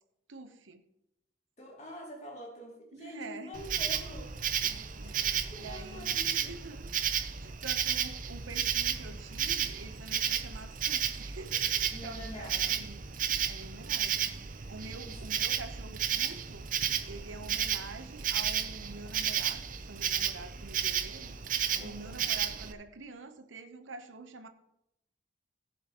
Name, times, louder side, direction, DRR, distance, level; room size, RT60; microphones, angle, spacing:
voice 1, 0.3-0.8 2.9-3.6 4.6-5.2 5.6-13.0 13.5-16.7 17.0-24.5, right 3 dB, 90° right, 0.9 m, -47 dB
voice 2, 1.6-4.3 5.0-6.6 11.9-12.8 15.1-15.2 21.8-22.2, left 1 dB, 35° left, 2.5 m, -46 dB
Insect, 3.5-22.7, right 9 dB, 45° right, 0.6 m, -33 dB
17.5 x 7.4 x 3.0 m
head